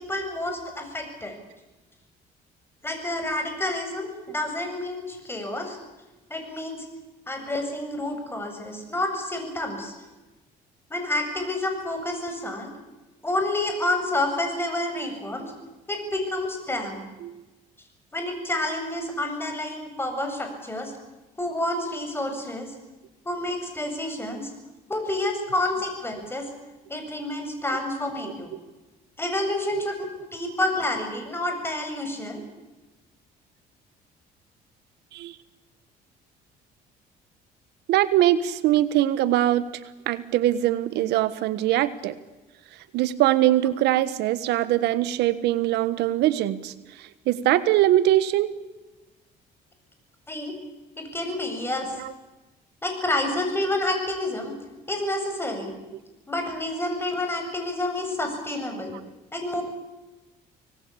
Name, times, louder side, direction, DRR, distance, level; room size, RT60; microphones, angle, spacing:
voice 1, 0.0-1.4 2.8-5.8 6.3-6.8 7.3-9.9 10.9-12.7 13.2-15.5 15.9-17.0 18.1-20.9 21.4-22.7 23.2-24.5 24.9-26.5 26.9-28.5 29.2-30.0 30.3-32.4 50.3-50.5 51.0-52.0 52.8-54.5 54.9-55.8 56.3-58.9 59.3-59.6, left 1 dB, 15° left, 5 dB, 7.8 m, -29 dB
voice 2, 37.9-39.6 40.1-42.1 42.9-46.7 47.0-48.5 52.0-52.1 55.9-56.0, right 13 dB, 85° right, 15 dB, 1.4 m, -22 dB
26.0 x 19.5 x 8.6 m, 1.1 s
cardioid pair, 110°, 17 cm